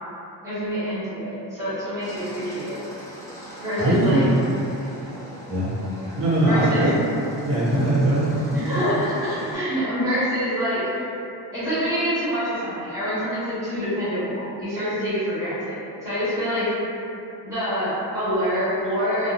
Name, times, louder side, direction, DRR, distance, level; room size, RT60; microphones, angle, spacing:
voice 1, 0.4-2.8 3.6-4.2 6.0-6.8 8.5-11.0 11.5-16.7 17.4-19.3, equal, 10° right, -16 dB, 1.5 m, -26 dB
sound 1, 2.0-9.5, equal, 10° left, 0.6 m, -40 dB
voice 2, 3.8-4.2 5.5-5.7 6.2-7.0 7.4-8.8, right 1 dB, 30° right, -9 dB, 0.8 m, -21 dB
2.8 x 2.0 x 2.5 m, 2.8 s
cardioid pair, 145°, 42 cm